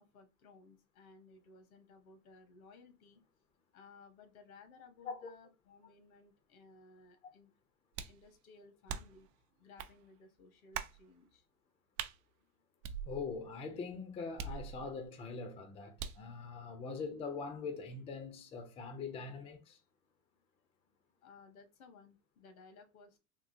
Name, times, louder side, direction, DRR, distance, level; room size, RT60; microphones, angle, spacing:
voice 1, 0.0-3.2 3.7-7.5 8.1-9.3 9.6-11.5 21.2-23.2, left 4 dB, 75° left, 1.1 m, -59 dB
sound 1, 7.9-8.2 8.9-9.3 9.8-9.9 10.7-11.0 12.0-12.2 12.8-13.5 14.4-15.1 16.0-16.3, right 7 dB, 60° right, 0.5 m, -42 dB
voice 2, 13.1-19.8, left 4 dB, 15° left, 0.4 m, -42 dB
3.6 x 2.3 x 2.5 m
hypercardioid pair, 105°, 42 cm